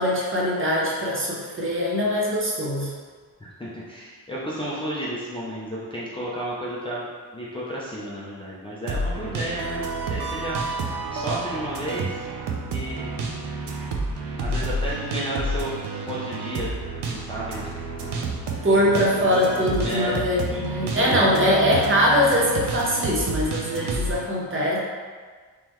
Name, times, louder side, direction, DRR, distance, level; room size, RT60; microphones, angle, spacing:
voice 1, 0.0-2.9 18.6-24.8, equal, 30° right, -4 dB, 0.7 m, -22 dB
voice 2, 3.4-7.1 7.3-12.2 12.7-13.1 14.4-15.7 16.1-16.7 17.1-17.7 18.0-18.1 19.8-21.6, equal, 15° left, -8 dB, 0.4 m, -32 dB
Bileda Lofe, 8.9-24.2, right 3 dB, 80° right, 0.6 m, -30 dB
3.7 x 3.0 x 3.0 m, 1.5 s
wide cardioid pair, 165°, 40 cm